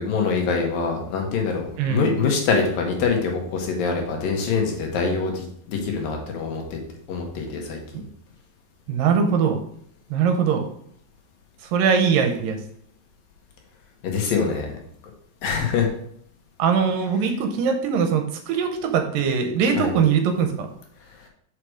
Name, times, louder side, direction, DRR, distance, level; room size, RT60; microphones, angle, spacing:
voice 1, 0.0-6.8 7.1-7.8 14.0-14.7 15.4-15.9 19.8-19.9, left 5 dB, 70° left, 1 dB, 2.9 m, -24 dB
voice 2, 1.8-2.2 8.9-9.6 10.1-10.6 11.6-12.6 16.6-20.7, right 6 dB, 75° right, 5 dB, 2.4 m, -21 dB
6.3 x 5.8 x 5.0 m, 0.66 s
omnidirectional pair, 4.3 m